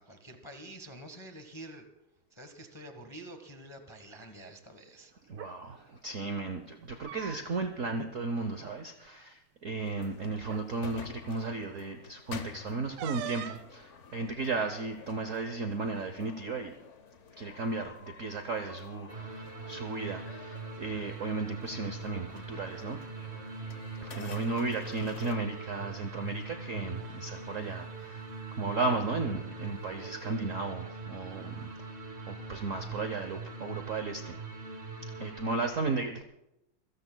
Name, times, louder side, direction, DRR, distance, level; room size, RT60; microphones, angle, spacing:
voice 1, 0.0-1.9 2.3-5.1, right 1 dB, 20° left, 5 dB, 0.8 m, -47 dB
voice 2, 5.3-16.7 17.4-23.0 24.0-28.3 28.6-31.9 32.3-34.4 35.2-36.2, right 3 dB, 60° right, 6 dB, 0.8 m, -35 dB
sound 1, 5.3-5.5 6.8-7.7 8.0-8.1 8.5-8.7 9.7-9.8 10.4-10.7 13.0-13.7, right 11 dB, 90° right, 1.6 m, -41 dB
sound 2, 9.8-25.4, left 5 dB, 50° left, 1.0 m, -50 dB
sound 3, 19.1-35.6, right 3 dB, 30° right, 1.7 m, -42 dB
27.0 x 17.0 x 2.3 m, 0.90 s
omnidirectional pair, 2.4 m